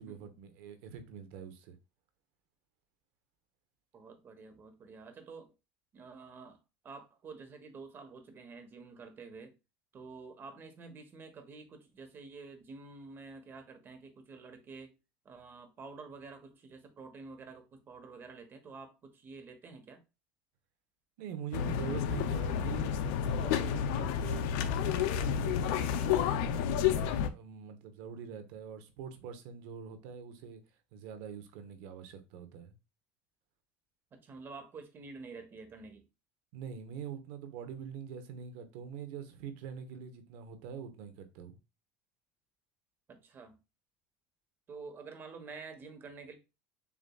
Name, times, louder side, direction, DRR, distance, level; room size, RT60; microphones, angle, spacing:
voice 1, 0.0-1.7 21.2-30.6 30.9-32.7 36.5-41.6, right 7 dB, 75° right, 1.0 m, -44 dB
voice 2, 3.9-5.5 5.9-6.6 6.8-9.5 9.9-14.9 15.2-20.0 34.1-36.0 43.1-43.6 44.7-46.3, right 4 dB, 35° right, 1.1 m, -49 dB
sound 1, 21.5-27.3, left 8 dB, 75° left, 0.5 m, -30 dB
7.0 x 2.5 x 2.3 m
supercardioid pair, 115°, 6 cm